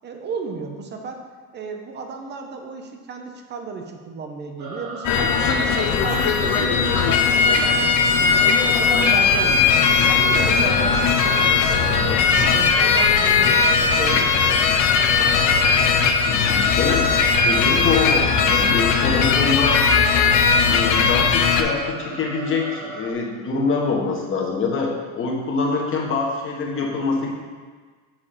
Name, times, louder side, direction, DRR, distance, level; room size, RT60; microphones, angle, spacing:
voice 1, 0.0-1.2 1.5-8.3 8.7-14.4, right 4 dB, 25° right, 4 dB, 0.8 m, -33 dB
sound 1, 4.6-23.1, right 2 dB, 65° right, 1.9 m, -36 dB
sound 2, 5.0-21.6, left 5 dB, 45° left, 0.7 m, -18 dB
voice 2, 16.2-17.1 17.4-19.8 20.7-27.3, left 4 dB, 30° left, -1 dB, 1.3 m, -25 dB
7.4 x 4.1 x 5.1 m, 1.5 s
cardioid pair, 145°, 41 cm